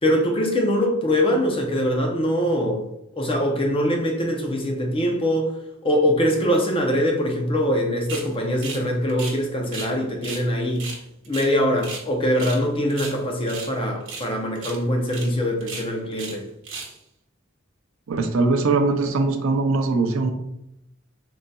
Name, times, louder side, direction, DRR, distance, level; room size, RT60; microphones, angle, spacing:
voice 1, 0.0-2.8 3.2-5.5 5.8-10.9 11.3-16.4, equal, 25° left, 0.6 m, -23 dB
sound 1, 8.1-8.3 8.6-8.8 9.1-9.9 10.2-10.4 10.7-12.1 12.3-12.6 12.9-13.7 14.0-14.3 14.5-14.8 15.1-15.3 15.6-16.4 16.6-17.0, right 4 dB, 65° right, 0.9 m, -35 dB
voice 2, 18.1-20.3, right 3 dB, 85° right, 0.5 m, -21 dB
3.9 x 3.8 x 2.3 m
head